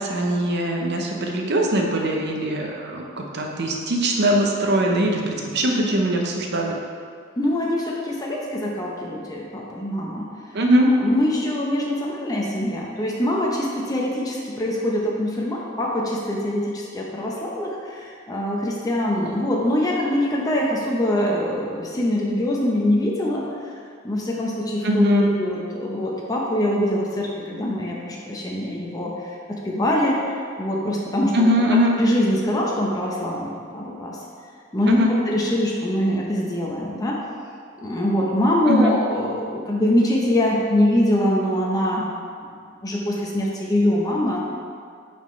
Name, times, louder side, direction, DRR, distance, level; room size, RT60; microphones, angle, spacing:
voice 1, 0.0-6.8 10.5-10.9 24.8-25.3 31.3-31.9 34.9-35.1 38.7-39.0, equal, 55° right, 1 dB, 0.8 m, -21 dB
voice 2, 7.4-10.3 11.0-23.4 24.0-25.0 25.4-29.1 29.5-31.3 32.0-34.2 34.7-37.2 37.8-42.1 42.4-42.5 42.8-44.4, left 1 dB, 20° left, -3 dB, 0.7 m, -23 dB
8.7 x 4.4 x 3.1 m, 2.2 s
head